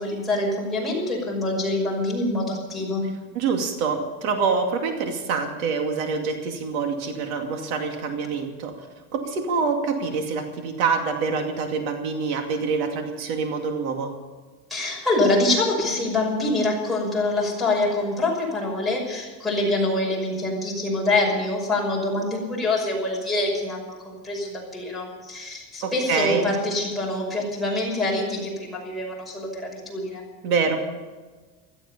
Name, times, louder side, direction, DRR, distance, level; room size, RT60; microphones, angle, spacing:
voice 1, 0.0-3.0 14.7-30.2, left 2 dB, ahead, -2 dB, 5.8 m, -25 dB
voice 2, 3.3-8.9 9.1-14.1 25.8-26.6 30.4-30.8, right 5 dB, 75° right, 4 dB, 2.6 m, -26 dB
17.0 x 14.0 x 5.6 m, 1.4 s
supercardioid pair, 160°, 42 cm